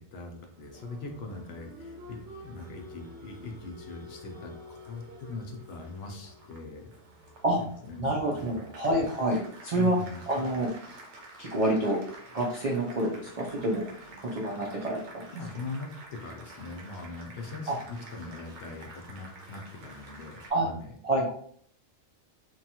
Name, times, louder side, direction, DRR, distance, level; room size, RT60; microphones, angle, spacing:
voice 1, 0.0-6.9 7.5-8.6 9.7-10.2 15.3-20.9, left 3 dB, 65° left, 3 dB, 0.7 m, -41 dB
Applause, 0.5-20.5, right 1 dB, 80° right, 1.0 m, -49 dB
voice 2, 8.0-10.0 10.3-10.7 11.4-12.0 12.3-13.9 14.2-15.0 17.7-17.8 20.5-20.7 21.0-21.3, right 1 dB, 60° right, -4 dB, 0.4 m, -27 dB
2.9 x 2.3 x 2.8 m, 0.63 s
omnidirectional pair, 1.2 m